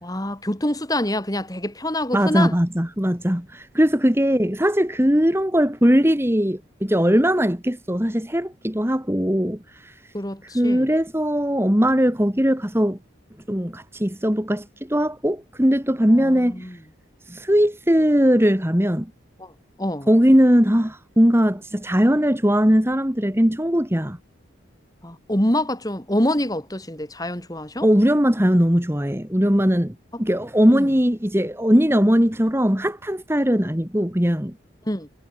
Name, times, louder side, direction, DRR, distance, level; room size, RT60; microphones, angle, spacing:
voice 1, 0.0-2.6 10.1-10.9 16.1-16.8 19.4-19.5 19.8-20.1 25.0-27.9 30.7-30.9 34.9-35.1, left 1 dB, 20° left, 3.7 m, -26 dB
voice 2, 2.1-9.9 10.5-13.0 13.5-16.7 17.3-19.1 20.1-24.2 27.8-34.5, equal, 10° right, 2.2 m, -19 dB
head